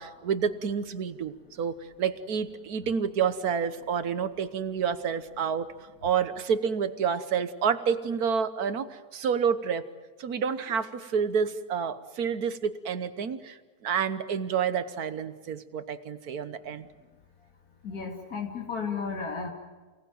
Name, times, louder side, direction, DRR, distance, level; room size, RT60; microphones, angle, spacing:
voice 1, 0.0-5.7 6.0-9.8 10.2-13.6 13.8-16.9, right 7 dB, 80° right, 11 dB, 1.6 m, -29 dB
voice 2, 17.8-19.5, left 5 dB, 80° left, -1 dB, 3.0 m, -33 dB
29.0 x 18.0 x 9.1 m, 1.3 s
omnidirectional pair, 1.6 m